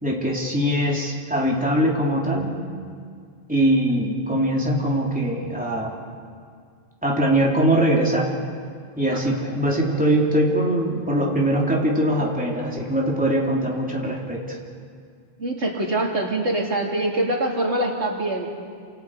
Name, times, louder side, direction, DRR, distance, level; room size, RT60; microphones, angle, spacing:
voice 1, 0.0-2.5 3.5-5.9 7.0-8.3 9.0-14.6, right 1 dB, 5° right, -3 dB, 3.4 m, -22 dB
voice 2, 15.4-18.5, right 1 dB, 90° right, -1 dB, 3.2 m, -24 dB
29.5 x 27.5 x 5.0 m, 2.1 s
omnidirectional pair, 1.1 m